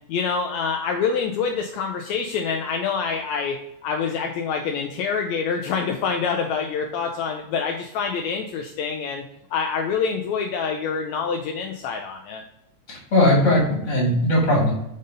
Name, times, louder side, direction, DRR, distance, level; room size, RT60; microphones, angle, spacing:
voice 1, 0.1-9.2 9.5-12.4, left 5 dB, 75° left, 3 dB, 1.8 m, -26 dB
voice 2, 12.9-14.7, left 1 dB, 25° left, -4 dB, 2.3 m, -19 dB
5.4 x 5.2 x 3.9 m, 0.81 s
omnidirectional pair, 3.4 m